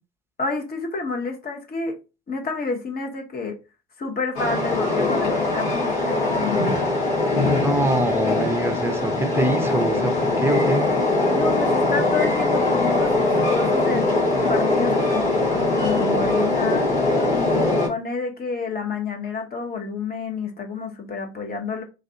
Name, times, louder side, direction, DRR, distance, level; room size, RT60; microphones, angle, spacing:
voice 1, 0.4-2.0 2.3-3.6 4.0-6.7 11.3-14.1 14.5-17.0 17.3-21.8, left 4 dB, 30° left, 1.0 m, -29 dB
Train, 4.3-17.9, left 2 dB, 70° left, 1.8 m, -21 dB
voice 2, 7.6-10.9, right 1 dB, 5° right, 0.7 m, -24 dB
3.3 x 2.5 x 2.8 m
figure-of-eight pair, 60°, 33 cm